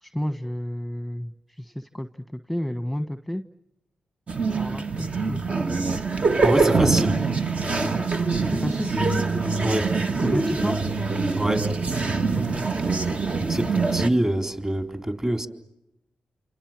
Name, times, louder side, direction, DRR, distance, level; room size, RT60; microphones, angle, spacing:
voice 1, 0.0-3.4 4.5-5.4 8.5-9.3 10.2-10.8 12.3-12.6, equal, ahead, 1.3 m, -31 dB
sound 1, 4.3-14.1, right 4 dB, 50° right, 1.5 m, -24 dB
voice 2, 6.4-7.2 9.6-9.9 11.4-11.7 13.4-15.5, right 1 dB, 25° right, 4.0 m, -25 dB
28.5 x 26.5 x 7.6 m
supercardioid pair, 45°, 3 cm